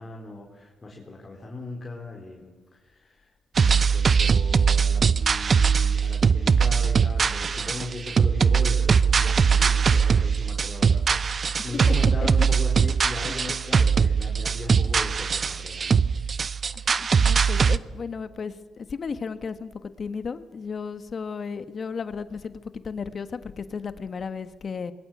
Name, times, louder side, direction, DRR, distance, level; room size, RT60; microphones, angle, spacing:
voice 1, 0.0-16.1, left 2 dB, 25° left, -1 dB, 4.3 m, -38 dB
sound 1, 3.6-17.8, right 6 dB, 40° right, 0.7 m, -21 dB
voice 2, 16.7-19.7 20.0-24.9, left 5 dB, 45° left, 11 dB, 1.5 m, -34 dB
26.5 x 21.5 x 8.0 m, 1.3 s
cardioid pair, 90°, 0 cm